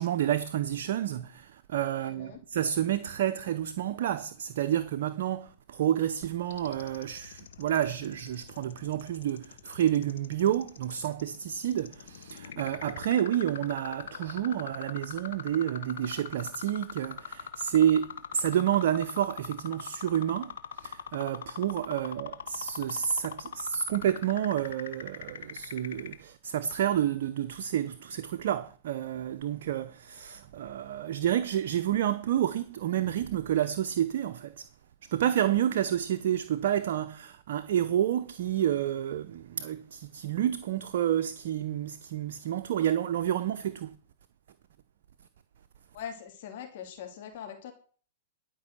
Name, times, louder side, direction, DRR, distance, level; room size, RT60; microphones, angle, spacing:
voice 1, 0.0-34.7 35.1-43.9, right 10 dB, 65° right, 0.7 m, -29 dB
voice 2, 2.0-2.4 45.9-47.7, left 8 dB, 60° left, 3.0 m, -42 dB
sound 1, 6.5-26.1, left 8 dB, 75° left, 1.1 m, -41 dB
11.5 x 5.4 x 8.3 m
hypercardioid pair, 115°, 0 cm